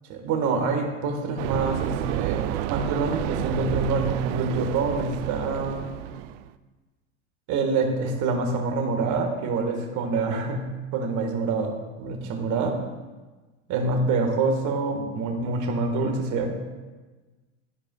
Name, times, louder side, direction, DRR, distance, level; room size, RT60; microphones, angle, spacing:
voice 1, 0.1-5.8 7.5-10.6 10.9-12.8 13.7-16.5, right 3 dB, 50° right, 3 dB, 1.5 m, -26 dB
sound 1, 1.4-6.5, right 13 dB, 70° right, 0.5 m, -30 dB
14.0 x 4.8 x 2.3 m, 1.3 s
hypercardioid pair, 105°, 38 cm